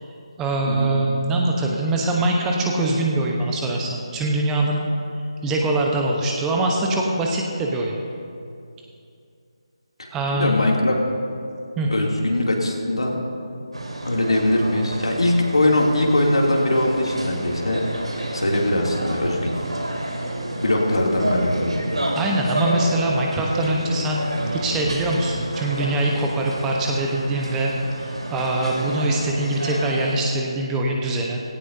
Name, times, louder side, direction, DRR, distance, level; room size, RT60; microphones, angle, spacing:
voice 1, 0.4-4.9 5.4-8.0 10.1-10.5 11.8-11.9 22.1-24.3 24.5-27.7 28.0-31.4, right 2 dB, 10° right, 0 dB, 1.0 m, -23 dB
voice 2, 10.0-10.9 11.9-13.1 14.0-17.8 18.1-19.5 20.5-21.8, left 1 dB, 75° left, -1 dB, 2.8 m, -21 dB
sound 1, 13.7-30.2, right 1 dB, 80° right, 2.3 m, -29 dB
17.0 x 16.0 x 2.8 m, 2.5 s
figure-of-eight pair, 155°, 3 cm